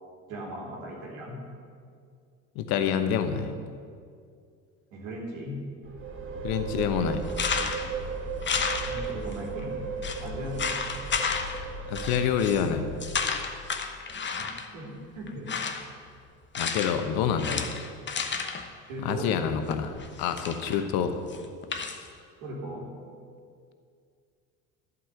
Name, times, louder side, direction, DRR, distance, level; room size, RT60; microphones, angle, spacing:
voice 1, 0.3-1.4 4.9-5.6 8.9-9.7 10.2-10.8 14.4-15.5 18.9-19.3 22.4-22.9, equal, 75° right, -2 dB, 3.0 m, -38 dB
voice 2, 2.5-3.5 6.4-7.2 11.9-12.9 16.6-17.7 19.0-21.2, left 8 dB, 65° left, 8 dB, 1.1 m, -27 dB
sound 1, 5.8-13.7, right 4 dB, 30° right, 1.7 m, -36 dB
sound 2, 7.3-7.9 8.4-9.3 9.6-9.7 10.0-10.2 10.6-11.6 12.0-12.7 13.0-14.7 15.3-15.9 16.5-17.1 17.4-18.7 19.7-20.9 21.3-22.0, left 5 dB, 30° left, 1.0 m, -32 dB
11.5 x 5.6 x 7.9 m, 2.2 s
hypercardioid pair, 70°, 39 cm